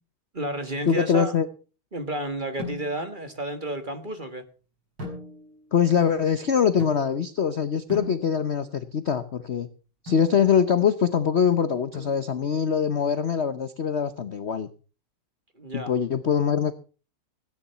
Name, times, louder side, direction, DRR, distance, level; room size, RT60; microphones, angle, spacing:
voice 1, 0.3-1.3 1.9-4.4 15.6-15.9, right 1 dB, 25° right, 1.3 m, -31 dB
voice 2, 0.9-1.5 5.7-9.7 10.0-14.7 15.7-16.7, left 7 dB, 65° left, 0.6 m, -23 dB
sound 1, 2.6-3.2 5.0-5.7 6.8-7.4 7.9-8.7 10.1-10.4 11.9-12.5, left 2 dB, 55° right, 6.7 m, -39 dB
17.0 x 10.0 x 5.6 m
omnidirectional pair, 2.4 m